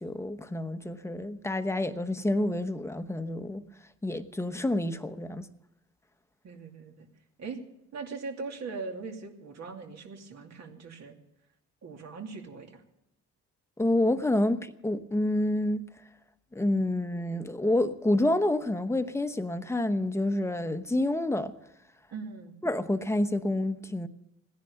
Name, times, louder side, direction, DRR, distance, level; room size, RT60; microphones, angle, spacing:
voice 1, 0.0-3.6 4.0-5.5 13.8-15.9 16.5-21.5 22.6-24.1, left 1 dB, 10° left, 1.0 m, -28 dB
voice 2, 6.4-7.1 7.4-7.6 7.9-11.2 11.8-12.8 22.1-22.6, right 4 dB, 60° right, 2.7 m, -40 dB
16.5 x 10.5 x 7.0 m
cardioid pair, 90°, 30 cm